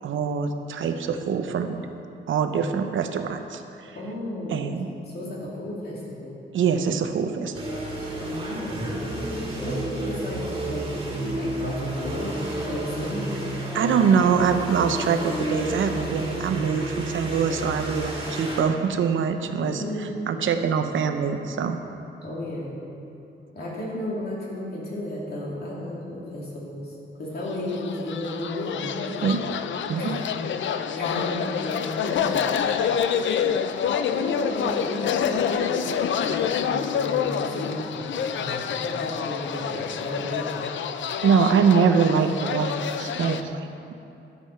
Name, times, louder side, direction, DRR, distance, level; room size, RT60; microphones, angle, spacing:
voice 1, 0.0-1.8 2.3-3.9 4.5-4.9 6.5-7.5 13.7-21.8 29.2-29.4 29.9-30.2 33.4-33.5 41.2-43.9, right 6 dB, 85° right, 7 dB, 0.8 m, -24 dB
voice 2, 3.9-4.7 5.0-6.4 8.2-12.4 12.6-13.4 19.6-20.3 22.2-22.8 23.5-29.3 30.0-30.5 31.0-32.6 34.1-40.7, left 1 dB, 55° left, -5 dB, 2.7 m, -33 dB
sound 1, 7.5-18.6, right 1 dB, 25° right, 2.2 m, -31 dB
sound 2, 27.6-43.4, left 8 dB, 75° left, 0.5 m, -27 dB
12.5 x 7.9 x 5.6 m, 2.8 s
wide cardioid pair, 165°, 20 cm